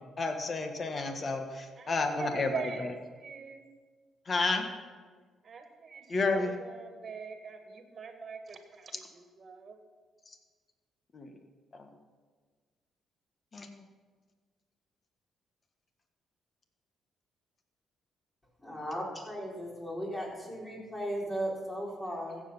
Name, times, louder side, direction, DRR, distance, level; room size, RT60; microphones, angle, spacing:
voice 1, 0.0-2.9 4.2-4.7 6.1-6.5 11.1-11.3 11.7-11.9 13.5-13.7, left 3 dB, 40° left, 5 dB, 1.5 m, -31 dB
voice 2, 1.8-3.7 5.4-9.8, right 5 dB, 45° right, 6 dB, 1.8 m, -42 dB
voice 3, 18.6-22.4, equal, 20° left, -3 dB, 4.4 m, -36 dB
15.0 x 7.7 x 5.6 m, 1.5 s
cardioid pair, 90°, 0 cm